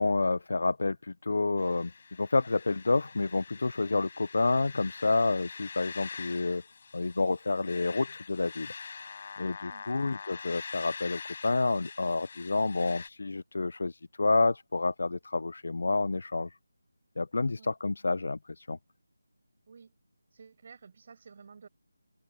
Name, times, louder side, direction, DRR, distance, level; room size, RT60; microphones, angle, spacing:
voice 1, 0.0-1.9 2.2-6.6 6.9-8.7 9.4-16.6 17.2-18.8, left 3 dB, 55° left, 0.5 m, -29 dB
sound 1, 1.6-13.1, left 5 dB, 35° left, 6.1 m, -45 dB
voice 2, 20.3-21.7, right 5 dB, 30° right, 5.8 m, -52 dB
figure-of-eight pair, 175°, 0 cm